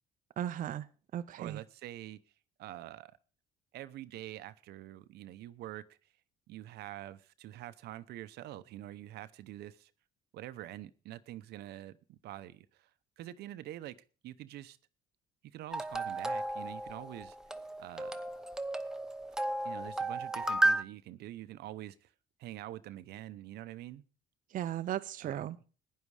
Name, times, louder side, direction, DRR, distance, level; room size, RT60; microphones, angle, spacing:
voice 1, 0.4-0.9 1.1-1.6 24.5-25.6, right 11 dB, 50° right, 0.6 m, -36 dB
voice 2, 1.4-2.2 2.6-3.2 3.7-6.0 6.5-9.9 10.3-12.9 13.2-14.0 14.2-14.8 15.4-17.4 17.8-18.2 19.6-22.1 22.4-24.0 25.2-25.4, right 14 dB, 75° right, 0.9 m, -46 dB
sound 1, 15.7-20.8, right 2 dB, 5° right, 0.9 m, -33 dB
15.5 x 10.5 x 4.9 m
cardioid pair, 110°, 17 cm